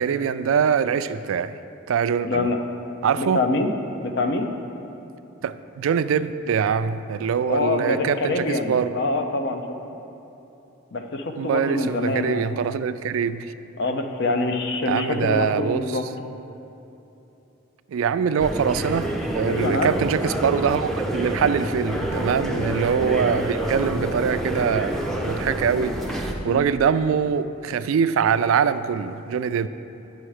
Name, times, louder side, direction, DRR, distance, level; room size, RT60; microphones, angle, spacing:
voice 1, 0.0-1.5 1.9-2.5 3.0-3.4 5.4-8.9 11.4-13.5 14.9-16.0 17.9-29.7, right 7 dB, 70° right, 13 dB, 0.3 m, -23 dB
voice 2, 2.2-2.6 3.2-3.7 4.0-4.5 7.5-9.6 10.9-12.4 13.8-16.0 19.5-19.9 22.5-22.8 26.4-26.7, left 2 dB, 55° left, 5 dB, 0.6 m, -25 dB
sound 1, 18.4-26.3, equal, ahead, 0.5 m, -27 dB
8.9 x 6.3 x 4.8 m, 2.9 s
head